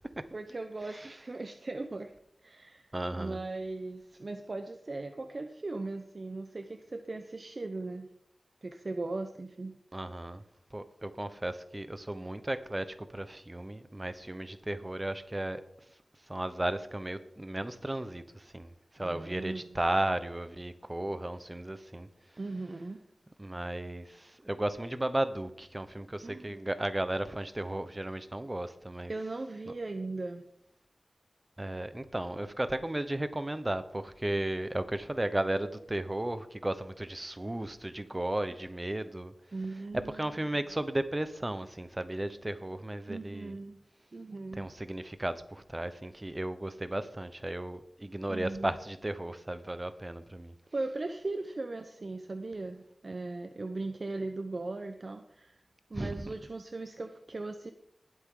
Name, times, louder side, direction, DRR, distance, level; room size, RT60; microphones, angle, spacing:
voice 1, 0.3-2.1 2.4-2.9 3.2-8.1 8.6-9.8 19.0-19.7 22.4-23.0 26.2-26.6 29.1-30.4 39.5-40.2 43.1-43.8 44.1-44.7 48.3-48.7 50.7-55.6 55.9-57.7, right 2 dB, 50° right, 0.8 m, -38 dB
voice 2, 2.9-3.4 9.9-10.4 10.7-15.6 16.3-22.1 23.4-29.1 31.6-39.3 40.1-43.6 44.5-50.5 55.9-56.3, right 1 dB, 20° right, 1.0 m, -35 dB
20.0 x 8.3 x 3.9 m
wide cardioid pair, 90°, 0 cm